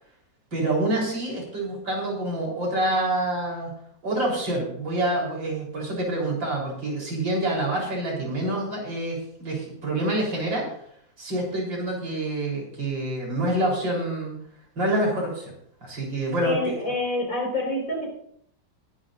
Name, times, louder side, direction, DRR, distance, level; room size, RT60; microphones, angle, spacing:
voice 1, 0.5-3.7 4.0-10.7 11.2-14.4 14.8-15.5 15.8-16.8, right 1 dB, 80° right, -2 dB, 4.9 m, -27 dB
voice 2, 16.4-18.1, left 2 dB, 90° left, -1 dB, 5.8 m, -27 dB
21.0 x 11.0 x 2.7 m, 0.68 s
omnidirectional pair, 2.0 m